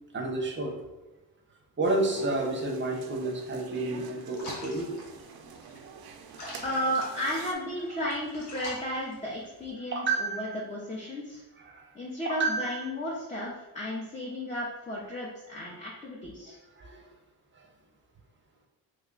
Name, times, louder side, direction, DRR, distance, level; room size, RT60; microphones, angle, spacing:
voice 1, 0.1-0.7 1.8-4.9 9.9-10.6 11.6-11.9 12.2-12.8 16.8-17.1, right 2 dB, 30° right, 1 dB, 0.7 m, -30 dB
sound 1, 1.8-7.5, right 6 dB, 65° right, 0.5 m, -45 dB
sound 2, 4.3-9.7, left 1 dB, 70° left, 1.1 m, -46 dB
voice 2, 6.6-11.4 11.9-16.6, equal, 20° left, -4 dB, 0.7 m, -34 dB
3.1 x 2.3 x 3.7 m, 1.1 s
cardioid pair, 95°, 40 cm